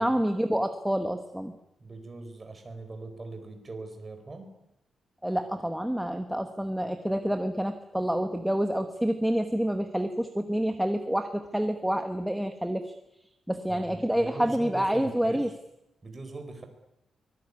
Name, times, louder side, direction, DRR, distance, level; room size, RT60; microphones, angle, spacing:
voice 1, 0.0-1.5 5.2-12.9 13.5-15.5, equal, 5° right, 7 dB, 1.3 m, -28 dB
voice 2, 1.8-4.5 13.7-15.5 16.0-16.6, right 3 dB, 20° right, 6 dB, 4.4 m, -41 dB
24.0 x 21.0 x 9.7 m, 0.85 s
wide cardioid pair, 175°, 0 cm